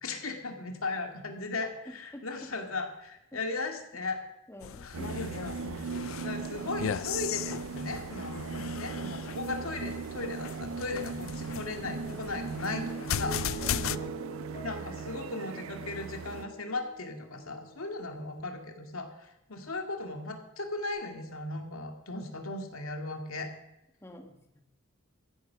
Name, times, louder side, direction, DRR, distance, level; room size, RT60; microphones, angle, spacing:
voice 1, 0.0-4.2 4.8-13.4 13.8-14.0 14.6-23.5, left 3 dB, 90° left, 4 dB, 2.3 m, -37 dB
voice 2, 1.8-2.5 3.3-3.4 4.5-4.9 8.5-8.6 13.6-13.9 24.0-24.6, left 1 dB, 10° left, 4 dB, 1.4 m, -47 dB
sound 1, 4.6-14.0, left 9 dB, 70° left, 0.4 m, -37 dB
sound 2, 4.9-16.5, right 5 dB, 70° right, 0.4 m, -38 dB
sound 3, 11.8-18.4, right 2 dB, 35° left, 6.3 m, -45 dB
15.0 x 11.0 x 5.9 m, 0.88 s
head